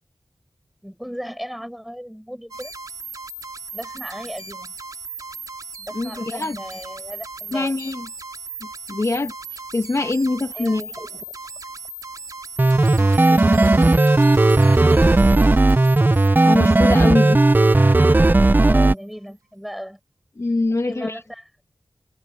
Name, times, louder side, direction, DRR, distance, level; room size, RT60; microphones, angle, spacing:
voice 1, 0.8-2.7 3.7-4.7 5.8-7.8 10.5-11.2 13.0-14.1 14.6-15.5 18.6-20.0 20.7-21.5, equal, ahead, 6.5 m, -36 dB
sound 1, 2.5-18.4, right 3 dB, 65° right, 4.1 m, -38 dB
voice 2, 5.9-6.6 7.5-8.1 8.9-10.8 16.4-17.4 20.4-21.2, left 2 dB, 50° left, 2.0 m, -23 dB
sound 2, 12.6-18.9, right 2 dB, 30° right, 0.7 m, -15 dB
wide cardioid pair, 55°, 7 cm